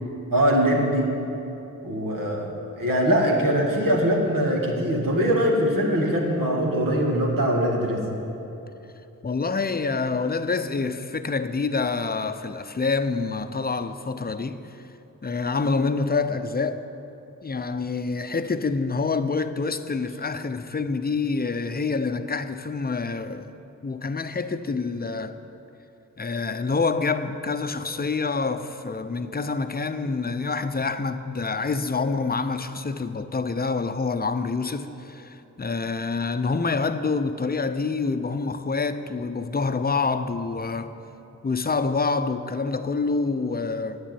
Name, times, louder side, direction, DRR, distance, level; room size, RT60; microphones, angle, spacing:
voice 1, 0.3-1.1 1.8-8.0, equal, 75° right, 2.0 m, -22 dB
voice 2, 9.2-14.9 15.2-16.9 17.4-23.5 23.8-25.4 26.2-40.9 41.4-44.0, left 4 dB, 30° left, 0.6 m, -27 dB
9.0 x 7.3 x 8.9 m
cardioid pair, 50°, 33 cm